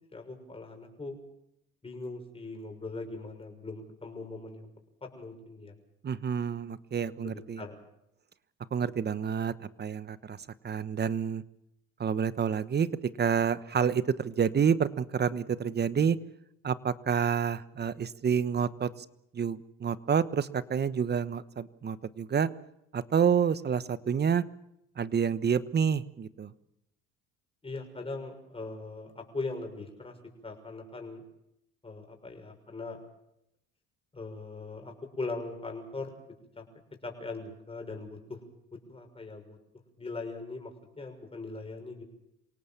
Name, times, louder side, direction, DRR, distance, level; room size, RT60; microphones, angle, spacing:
voice 1, 0.1-1.2 1.8-4.7 5.0-5.7 7.2-7.8 27.6-30.2 30.4-31.2 31.8-33.0 34.1-36.1 36.6-36.7 37.0-38.4 38.9-39.6 40.0-42.0, left 3 dB, 20° left, 3 dB, 6.5 m, -40 dB
voice 2, 6.0-7.7 8.7-10.4 10.6-11.4 12.0-16.2 16.6-19.0 19.3-22.5 22.9-24.4 25.0-26.5, right 7 dB, 35° right, 15 dB, 1.2 m, -28 dB
27.0 x 18.0 x 7.3 m, 0.79 s
cardioid pair, 95°, 29 cm